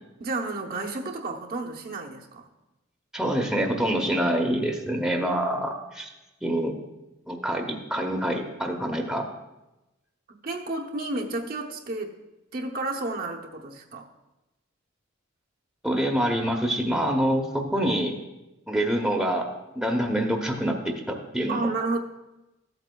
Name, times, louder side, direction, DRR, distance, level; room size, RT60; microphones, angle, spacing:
voice 1, 0.2-2.5 10.3-12.2 12.5-14.1 21.5-22.0, right 2 dB, 50° right, 1 dB, 0.8 m, -31 dB
voice 2, 3.1-6.1 6.4-6.8 7.3-9.3 15.8-18.1 18.7-21.7, right 1 dB, 5° right, 1 dB, 0.8 m, -26 dB
14.0 x 8.0 x 2.3 m, 0.97 s
head